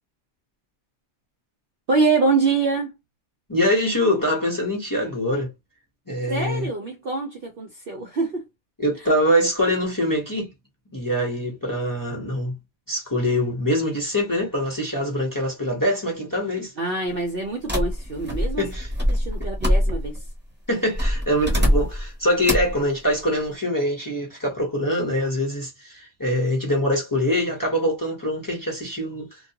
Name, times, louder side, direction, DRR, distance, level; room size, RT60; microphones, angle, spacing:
voice 1, 1.9-2.9 6.3-8.5 9.0-9.1 16.8-18.7 19.1-20.2, right 4 dB, 55° right, 0.6 m, -25 dB
voice 2, 3.5-5.5 6.1-6.7 8.8-10.5 10.9-12.6 12.9-16.7 18.6-18.9 20.7-29.4, equal, 15° left, 0.8 m, -24 dB
sound 1, 17.7-20.3 21.0-22.1 22.4-22.8, equal, 10° right, 0.6 m, -23 dB
2.3 x 2.2 x 2.8 m
omnidirectional pair, 1.4 m